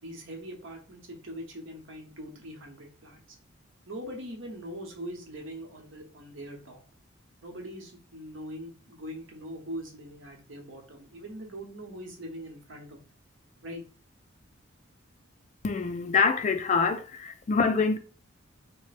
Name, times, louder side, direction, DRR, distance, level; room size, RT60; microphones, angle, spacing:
voice 1, 0.0-3.2 3.9-6.8 7.4-13.0 13.6-13.8, equal, 65° right, 1.1 m, -42 dB
voice 2, 15.6-18.0, left 5 dB, 35° left, 0.3 m, -25 dB
3.2 x 2.2 x 4.1 m
head